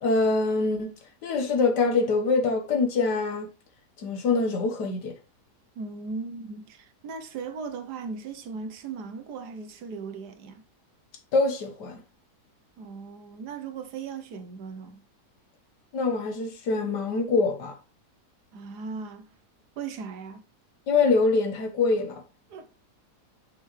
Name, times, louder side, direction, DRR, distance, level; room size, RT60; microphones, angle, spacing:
voice 1, 0.0-3.5 4.0-5.1 11.3-12.0 15.9-17.7 20.9-22.2, left 3 dB, 80° left, 1.8 m, -24 dB
voice 2, 5.7-10.6 12.8-15.0 18.5-19.3 19.8-20.4 22.5-22.9, right 5 dB, 75° right, 1.5 m, -38 dB
6.3 x 5.7 x 3.2 m
omnidirectional pair, 1.8 m